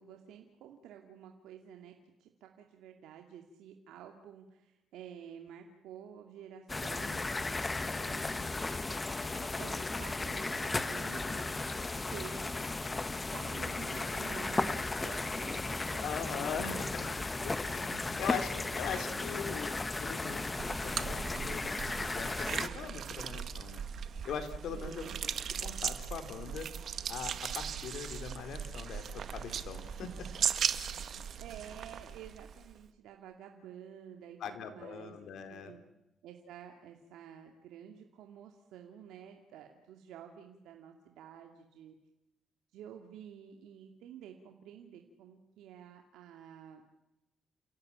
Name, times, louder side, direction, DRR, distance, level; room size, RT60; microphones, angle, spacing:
voice 1, 0.0-1.9 2.2-7.3 7.9-8.5 9.3-11.8 12.1-12.6 13.3-19.6 24.7-25.2 31.4-35.1 35.5-35.8 36.2-41.9 42.7-46.8, right 9 dB, 85° right, 3 dB, 2.4 m, -51 dB
sound 1, 6.7-22.7, left 3 dB, 20° left, 1.4 m, -35 dB
voice 2, 16.0-18.5 18.8-19.7 20.0-23.8 24.2-25.3 25.6-26.7 27.1-30.3 34.4-35.7, left 6 dB, 75° left, 7 dB, 3.9 m, -41 dB
sound 2, 20.6-32.8, right 7 dB, 60° right, 1.7 m, -38 dB
29.5 x 17.0 x 8.8 m, 0.94 s
cardioid pair, 90°, 0 cm